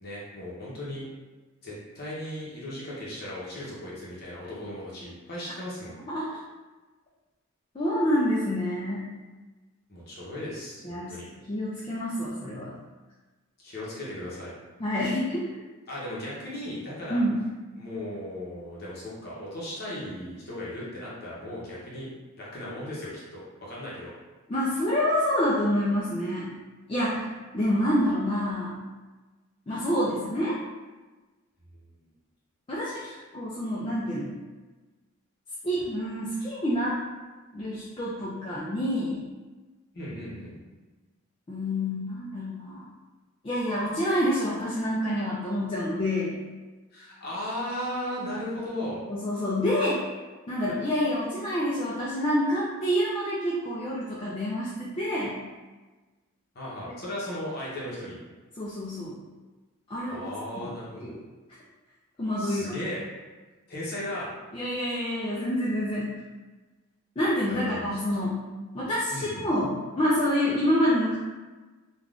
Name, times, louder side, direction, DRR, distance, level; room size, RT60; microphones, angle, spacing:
voice 1, 0.0-1.1 1.6-5.9 9.9-11.2 13.6-14.6 15.9-17.2 17.7-24.1 32.9-33.2 39.9-40.6 46.9-49.0 56.5-58.2 60.1-61.1 62.4-63.1 63.7-64.3 67.5-68.0 69.1-69.5, left 1 dB, 45° left, -7 dB, 0.8 m, -36 dB
voice 2, 7.7-9.0 10.8-11.1 11.5-12.7 14.8-15.5 17.1-17.4 24.5-26.5 26.9-28.8 29.7-30.6 32.7-32.9 33.3-34.3 35.6-37.0 37.5-39.2 41.5-42.9 43.4-46.4 49.1-50.1 50.5-55.4 58.6-59.2 59.9-60.3 60.6-60.7 61.0-61.2 62.2-62.7 64.5-66.1 67.2-68.4 68.7-71.2, equal, 25° left, -7 dB, 0.3 m, -27 dB
3.4 x 2.3 x 2.4 m, 1.2 s
head